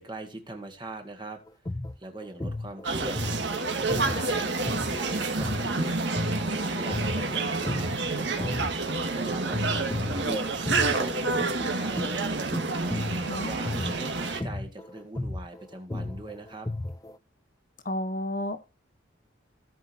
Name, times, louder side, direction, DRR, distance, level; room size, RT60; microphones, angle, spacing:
voice 1, 0.0-1.4 2.0-3.2 3.5-6.1 6.7-8.7 9.1-10.3 10.5-12.6 13.1-16.7, right 2 dB, 25° right, 1.8 m, -42 dB
sound 1, 1.5-9.2 9.5-17.2, left 2 dB, 15° left, 0.5 m, -35 dB
sound 2, 2.8-14.4, right 3 dB, 60° right, 1.8 m, -29 dB
voice 2, 13.3-14.0 17.8-18.6, left 1 dB, 40° left, 1.2 m, -32 dB
17.0 x 5.8 x 2.8 m
head